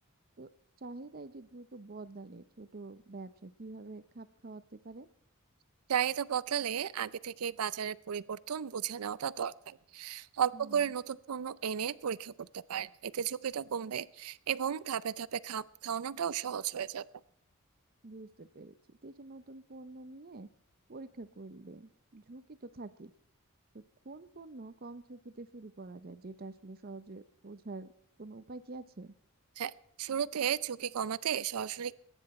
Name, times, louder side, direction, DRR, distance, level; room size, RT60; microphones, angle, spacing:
voice 1, 0.8-5.1 10.5-10.8 18.0-18.7 19.0-20.5 20.9-23.1 23.7-27.9 28.2-29.1, right 2 dB, 45° right, 14 dB, 0.7 m, -47 dB
voice 2, 5.9-17.0 29.6-29.7 30.0-31.9, right 8 dB, 90° right, 18 dB, 0.5 m, -34 dB
22.0 x 10.0 x 4.3 m, 0.73 s
head